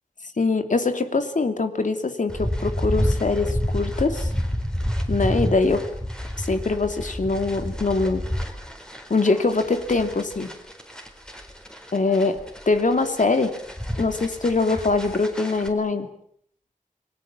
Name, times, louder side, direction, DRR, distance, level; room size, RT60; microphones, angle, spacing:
voice 1, 0.4-4.3 5.1-5.9 6.4-8.3 9.1-10.5 11.9-12.4 12.7-13.6 14.0-16.1, left 3 dB, 65° left, 7 dB, 2.8 m, -23 dB
sound 1, 2.3-15.7, equal, 5° left, 4.3 m, -29 dB
29.0 x 21.0 x 7.4 m, 0.66 s
wide cardioid pair, 75°, 14 cm